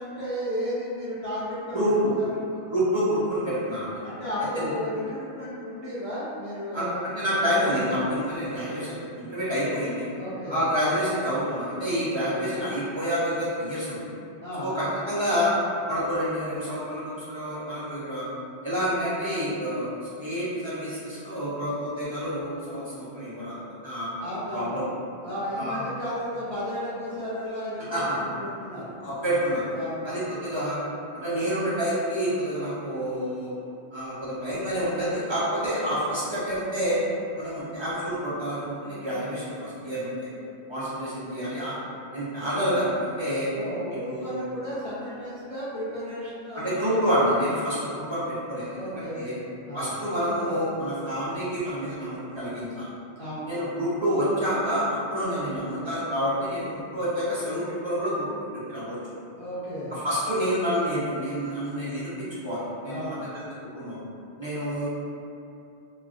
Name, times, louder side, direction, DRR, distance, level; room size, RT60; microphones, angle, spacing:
voice 1, 0.0-2.5 4.0-7.0 7.5-7.8 10.1-10.6 14.4-14.8 24.2-24.8 25.2-29.0 29.7-30.1 43.5-47.3 48.7-49.9 53.2-53.5 59.4-59.9 62.9-63.2, equal, 50° left, -11 dB, 0.4 m, -34 dB
voice 2, 1.7-2.1 2.7-3.9 4.6-4.7 6.7-10.1 10.5-14.0 14.6-15.5 15.9-18.2 18.6-19.9 20.2-24.1 24.5-24.8 25.5-25.9 27.9-28.2 29.0-29.7 30.0-30.8 31.1-33.5 33.9-37.0 37.3-40.1 40.7-41.7 42.1-43.5 44.1-44.4 46.5-49.3 49.7-52.9 53.5-58.3 58.7-59.0 59.9-63.4 63.7-64.0 64.4-64.9, equal, 40° right, -11 dB, 0.4 m, -28 dB
3.1 x 2.3 x 2.4 m, 2.6 s
omnidirectional pair, 1.3 m